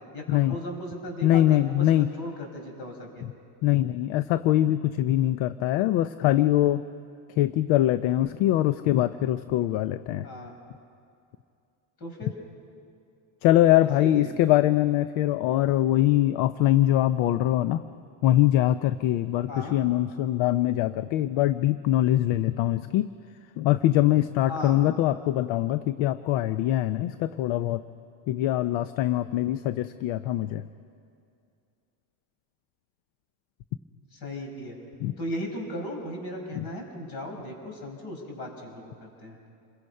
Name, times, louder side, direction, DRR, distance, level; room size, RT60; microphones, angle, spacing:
voice 1, 0.1-3.2 10.2-10.5 12.0-12.3 14.0-14.3 19.5-19.7 24.5-24.8 34.1-34.8 35.2-39.5, left 1 dB, 50° left, 2 dB, 5.2 m, -37 dB
voice 2, 1.2-2.1 3.6-6.8 7.4-10.3 13.4-17.8 18.2-23.1 23.6-27.8 28.3-30.6 35.0-35.1 36.5-36.6, left 13 dB, 70° left, 13 dB, 0.7 m, -23 dB
28.5 x 22.5 x 5.5 m, 2.5 s
cardioid pair, 160°, 50 cm